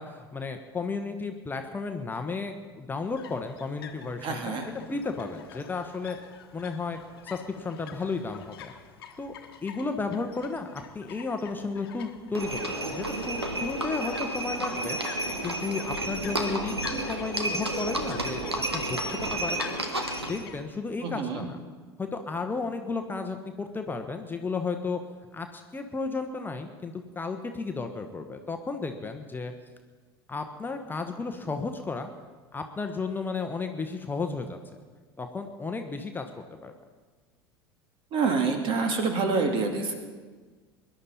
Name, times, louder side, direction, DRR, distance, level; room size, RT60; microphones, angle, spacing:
voice 1, 0.0-6.2 6.5-8.7 9.2-9.3 9.6-15.0 15.4-18.4 18.7-19.8 20.3-21.6 22.0-25.0 25.3-29.5 30.3-32.1 32.5-34.6 35.2-36.2 36.6-36.7, left 4 dB, 15° left, 5 dB, 1.1 m, -33 dB
sound 1, 3.0-20.6, left 9 dB, 65° left, 1.2 m, -47 dB
voice 2, 4.2-4.7 21.0-21.5 38.1-39.9, right 4 dB, 40° right, 4 dB, 2.4 m, -27 dB
Livestock farm animals working animals, 12.3-20.5, right 1 dB, 85° right, 1.5 m, -31 dB
23.5 x 11.5 x 4.2 m, 1.4 s
figure-of-eight pair, 75°, 13 cm